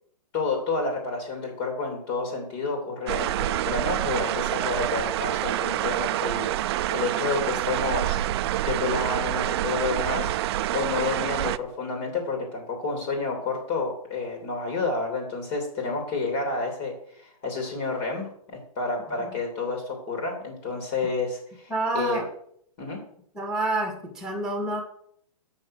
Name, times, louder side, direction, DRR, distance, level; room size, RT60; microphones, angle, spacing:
voice 1, 0.3-8.2 8.6-10.3 10.7-22.2 22.8-23.0, left 3 dB, 40° left, 2 dB, 3.0 m, -30 dB
sound 1, 3.1-11.6, right 13 dB, 45° right, 0.4 m, -27 dB
voice 2, 21.7-22.3 23.3-24.8, right 2 dB, 5° right, 2 dB, 1.9 m, -28 dB
7.8 x 6.6 x 6.4 m, 0.66 s
hypercardioid pair, 150°, 19 cm